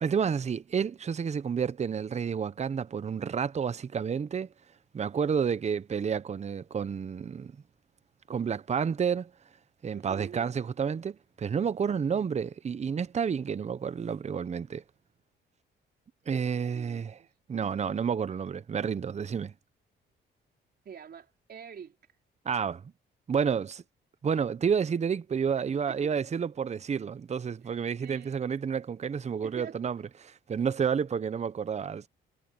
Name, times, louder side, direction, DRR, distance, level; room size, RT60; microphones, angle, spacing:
voice 1, 0.0-4.5 4.9-7.5 8.3-9.3 9.8-14.8 16.3-17.2 17.5-19.5 22.4-22.8 23.3-23.8 24.2-30.0 30.5-32.1, right 7 dB, 35° right, 0.8 m, -30 dB
voice 2, 9.9-10.6 16.7-17.3 20.8-22.0 25.6-26.2 27.6-28.4 29.4-29.9, right 7 dB, 55° right, 4.3 m, -46 dB
cardioid pair, 90°, 20 cm